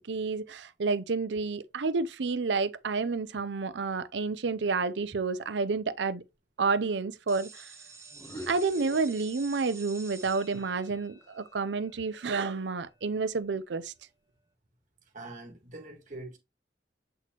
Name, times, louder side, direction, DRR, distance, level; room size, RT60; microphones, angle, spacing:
voice 1, 0.0-6.2 6.6-7.7 8.5-13.9, right 4 dB, 90° right, 0.6 m, -30 dB
sound 1, 7.3-12.9, right 4 dB, 15° right, 0.9 m, -50 dB
sound 2, 8.1-9.9 10.2-12.4, equal, 20° left, 1.3 m, -48 dB
voice 2, 15.1-16.4, right 2 dB, 45° right, 1.7 m, -43 dB
7.6 x 4.2 x 3.0 m
head